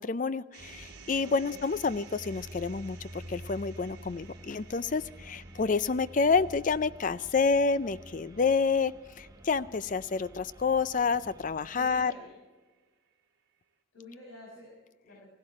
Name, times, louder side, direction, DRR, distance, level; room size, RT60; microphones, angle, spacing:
voice 1, 0.0-12.1, left 4 dB, 40° left, 16 dB, 0.4 m, -28 dB
sound 1, 0.5-12.7, right 7 dB, 55° right, 3.4 m, -56 dB
sound 2, 0.6-12.1, equal, 15° right, 0.8 m, -49 dB
voice 2, 1.2-1.6 11.7-12.4 13.9-15.3, left 1 dB, 80° left, -3 dB, 5.4 m, -48 dB
16.0 x 15.5 x 4.8 m, 1.3 s
head